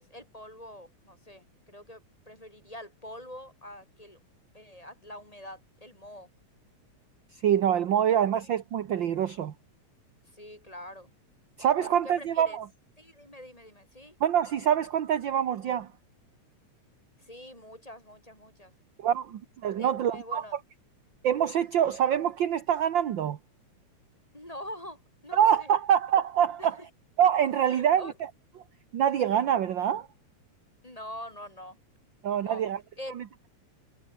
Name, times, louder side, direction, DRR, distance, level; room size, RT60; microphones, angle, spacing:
voice 1, 0.0-4.2 4.5-6.3 10.3-11.1 11.8-12.6 13.0-14.2 17.2-18.7 19.8-20.6 24.3-25.8 26.6-26.7 27.6-28.1 30.8-31.8 32.4-32.6 33.0-33.2, left 1 dB, 10° left, 6.1 m, -45 dB
voice 2, 7.4-9.5 11.6-12.6 14.2-15.9 19.0-20.4 21.2-23.4 25.3-26.8 27.2-28.3 28.9-30.1 32.2-32.8 33.2-33.3, right 9 dB, 55° right, 1.4 m, -25 dB
omnidirectional pair, 3.3 m